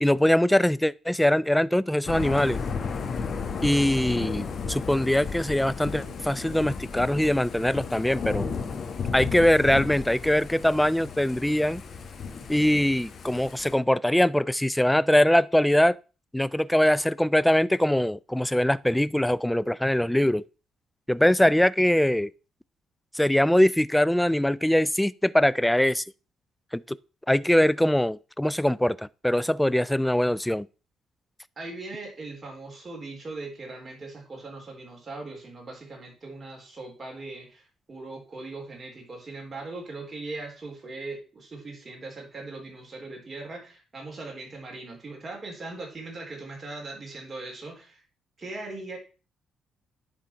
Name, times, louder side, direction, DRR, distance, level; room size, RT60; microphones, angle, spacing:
voice 1, 0.0-2.6 3.6-8.5 9.1-11.8 12.5-16.0 16.3-20.4 21.1-22.3 23.1-26.0 26.7-27.0 27.3-30.7, left 1 dB, 5° left, 0.3 m, -22 dB
Thunder / Rain, 2.1-13.7, left 5 dB, 50° left, 1.3 m, -34 dB
voice 2, 31.6-48.0 48.4-49.0, right 3 dB, 35° right, 3.5 m, -40 dB
10.5 x 3.8 x 4.5 m
cardioid pair, 90°, 0 cm